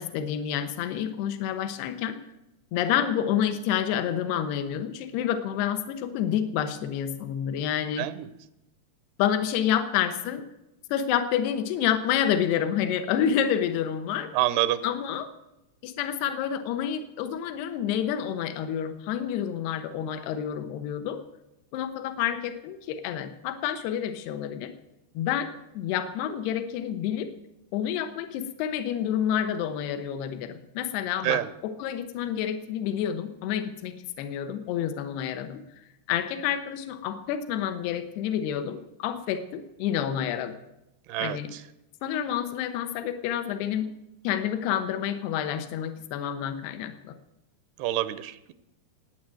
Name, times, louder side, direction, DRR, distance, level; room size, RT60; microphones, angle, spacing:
voice 1, 0.0-2.2 2.7-8.1 9.2-10.4 10.9-14.3 14.8-15.3 15.8-21.2 21.7-24.7 25.2-27.3 27.7-35.6 36.1-40.5 41.2-41.5 42.0-43.9 44.2-47.1, left 9 dB, 85° left, 8 dB, 3.0 m, -29 dB
voice 2, 14.3-14.8 31.2-31.5 41.1-41.4 47.8-48.5, right 14 dB, 85° right, 14 dB, 2.7 m, -26 dB
19.0 x 9.0 x 7.6 m, 0.91 s
omnidirectional pair, 4.6 m